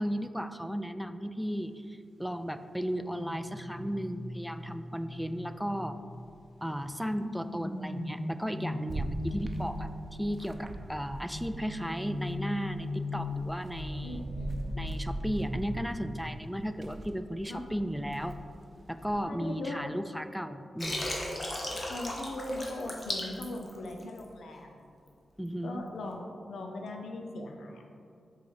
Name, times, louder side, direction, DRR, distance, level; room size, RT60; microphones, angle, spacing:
voice 1, 0.0-6.0 6.6-14.2 14.8-18.4 18.9-21.1 25.4-25.9, equal, ahead, 10 dB, 0.3 m, -35 dB
sound 1, 2.8-6.4 7.0-10.2 11.3-16.5 16.8-17.1, left 1 dB, 60° left, 1.3 m, -39 dB
sound 2, 8.9-11.7 12.0-19.2, right 1 dB, 40° right, 0.6 m, -41 dB
voice 2, 14.0-14.6 17.5-17.6 19.3-19.9 21.9-24.9 25.6-27.8, left 2 dB, 85° left, 2 dB, 0.6 m, -40 dB
Water, 20.8-24.3, left 1 dB, 35° left, 1.2 m, -35 dB
6.7 x 4.0 x 4.8 m, 2.4 s
cardioid pair, 80°, 0 cm